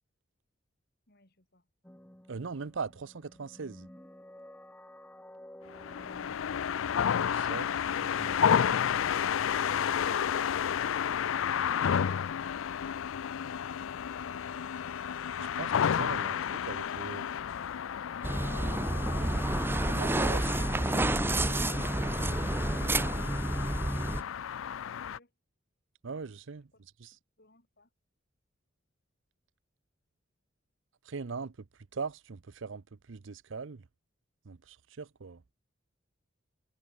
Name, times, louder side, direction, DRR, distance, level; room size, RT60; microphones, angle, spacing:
voice 1, 1.1-1.7 24.9-25.3 26.7-26.8 27.1-27.9, left 1 dB, 50° left, 6.4 m, -66 dB
sound 1, 1.8-7.3, left 1 dB, 10° left, 1.2 m, -53 dB
voice 2, 2.3-3.9 7.2-7.7 8.0-8.8 15.4-16.4 16.7-17.2 19.8-21.3 26.0-26.7 27.0-27.1 31.0-31.7 31.9-33.9 34.4-35.4, right 5 dB, 70° right, 0.6 m, -40 dB
sound 2, 5.7-25.2, left 8 dB, 80° left, 0.4 m, -32 dB
sound 3, 18.2-24.2, right 2 dB, 10° right, 0.5 m, -29 dB
head